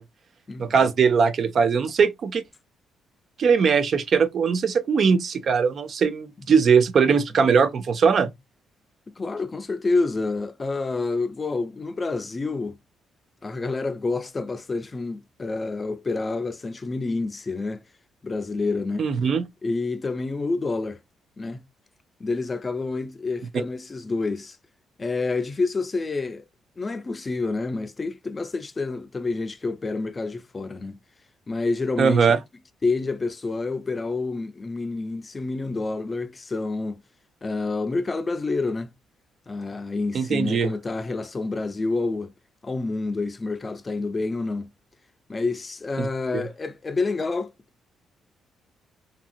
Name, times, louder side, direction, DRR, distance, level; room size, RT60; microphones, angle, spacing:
voice 1, 0.6-2.4 3.4-8.3 19.0-19.4 32.0-32.4 40.1-40.7 46.0-46.1 46.3-46.4, right 6 dB, 55° right, 0.5 m, -20 dB
voice 2, 9.2-12.8 13.4-17.8 18.2-19.0 19.6-21.0 21.4-21.6 22.2-24.6 25.0-26.4 26.8-31.0 31.5-32.4 32.8-37.0 37.4-38.9 39.5-42.3 42.6-44.7 45.3-47.5, left 3 dB, 30° left, 0.4 m, -28 dB
2.8 x 2.6 x 2.5 m
cardioid pair, 90°, 0 cm